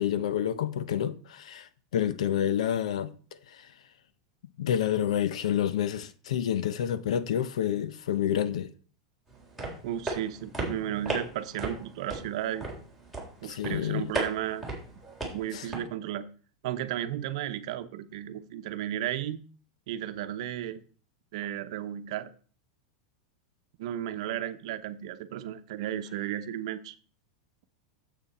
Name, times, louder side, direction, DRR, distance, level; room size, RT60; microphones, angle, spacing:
voice 1, 0.0-3.1 3.5-3.7 4.6-8.7 13.4-14.1 15.5-15.7, left 10 dB, 90° left, 0.8 m, -29 dB
sound 1, 9.3-15.8, right 2 dB, ahead, 3.6 m, -37 dB
voice 2, 9.8-12.7 13.4-14.6 15.3-16.3 16.6-19.4 19.9-20.8 21.3-22.3 23.8-26.9, right 11 dB, 65° right, 0.9 m, -34 dB
9.0 x 7.6 x 4.2 m
supercardioid pair, 140°, 3 cm